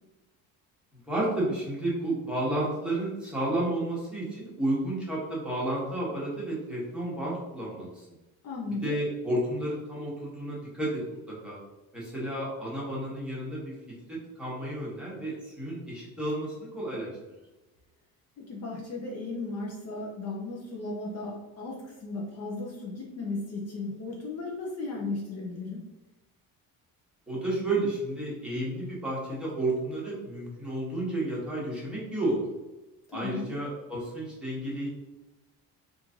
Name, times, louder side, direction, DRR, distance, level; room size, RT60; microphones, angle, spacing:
voice 1, 0.9-8.1 8.7-11.6 11.9-17.1 27.3-32.4 33.1-34.9, right 1 dB, 5° right, -7 dB, 1.1 m, -31 dB
voice 2, 8.4-9.0 18.4-25.8 33.1-33.5, left 3 dB, 45° left, -2 dB, 0.6 m, -36 dB
3.0 x 2.6 x 3.6 m, 1.1 s
cardioid pair, 155°, 36 cm